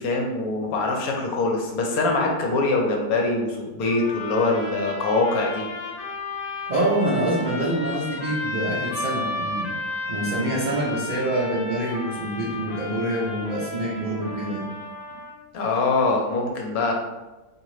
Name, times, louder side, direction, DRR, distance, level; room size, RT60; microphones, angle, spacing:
voice 1, 0.0-5.6 15.5-16.9, left 3 dB, 70° left, 0 dB, 1.0 m, -23 dB
sound 1, 3.8-15.4, left 2 dB, 25° left, 1.0 m, -33 dB
voice 2, 6.7-9.7 10.1-14.7, right 1 dB, 75° right, -6 dB, 0.4 m, -26 dB
3.8 x 2.8 x 3.1 m, 1.1 s
omnidirectional pair, 1.8 m